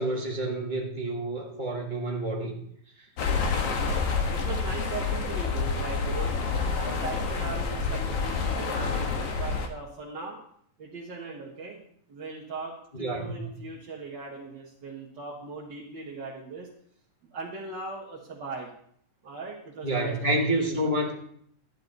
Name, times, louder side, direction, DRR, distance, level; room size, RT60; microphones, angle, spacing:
voice 1, 0.0-2.6 12.9-13.4 19.8-21.1, right 1 dB, 35° left, -3 dB, 0.7 m, -28 dB
sound 1, 3.2-9.7, left 4 dB, 60° left, 2.0 m, -28 dB
voice 2, 4.3-6.3 6.8-10.4 10.8-11.8 12.1-16.7 17.3-18.7 19.2-21.1, right 4 dB, 45° right, -5 dB, 1.7 m, -39 dB
12.5 x 10.5 x 4.0 m, 0.65 s
omnidirectional pair, 3.7 m